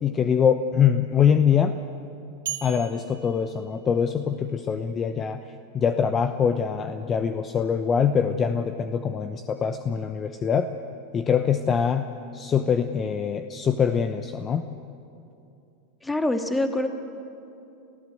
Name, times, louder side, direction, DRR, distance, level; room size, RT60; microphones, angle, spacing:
voice 1, 0.0-1.8 2.6-5.4 5.7-10.7 11.1-12.1 12.3-14.7, left 7 dB, 30° left, 9 dB, 0.9 m, -23 dB
sound 1, 2.5-4.5, right 10 dB, 80° right, 3.0 m, -38 dB
voice 2, 16.0-16.9, left 1 dB, 10° left, 6 dB, 2.0 m, -25 dB
28.5 x 15.0 x 7.9 m, 2.7 s
hypercardioid pair, 105°, 0 cm